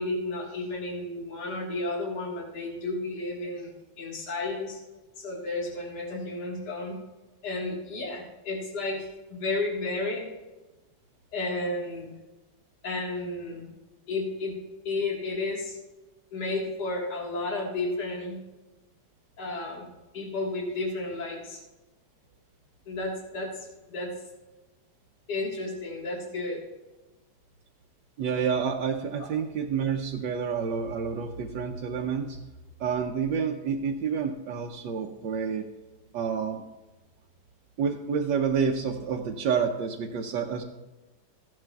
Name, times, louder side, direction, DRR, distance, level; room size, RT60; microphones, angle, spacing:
voice 1, 0.0-4.8 5.2-7.0 7.4-10.3 11.3-12.1 12.8-13.7 14.1-14.6 14.9-15.8 16.3-18.4 19.4-19.9 20.1-21.6 22.9-24.1 25.3-26.6, left 2 dB, 65° left, -1 dB, 2.3 m, -32 dB
voice 2, 28.2-32.4 32.8-35.7 36.1-36.6 37.8-40.6, right 6 dB, 80° right, 2 dB, 1.4 m, -29 dB
15.0 x 10.5 x 2.3 m, 1.1 s
omnidirectional pair, 2.0 m